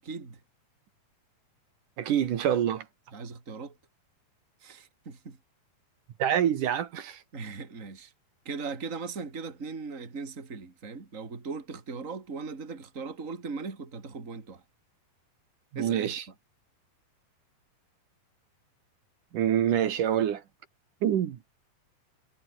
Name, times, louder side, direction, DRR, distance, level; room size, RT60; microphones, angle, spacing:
voice 1, 0.0-0.4 3.1-3.8 4.6-5.4 7.3-8.1 8.4-14.6 15.7-16.1, right 4 dB, 20° right, 3.3 m, -39 dB
voice 2, 2.0-2.8 6.2-7.2 15.7-16.2 19.3-20.4 21.0-21.4, right 10 dB, 65° right, 3.0 m, -26 dB
omnidirectional pair, 4.2 m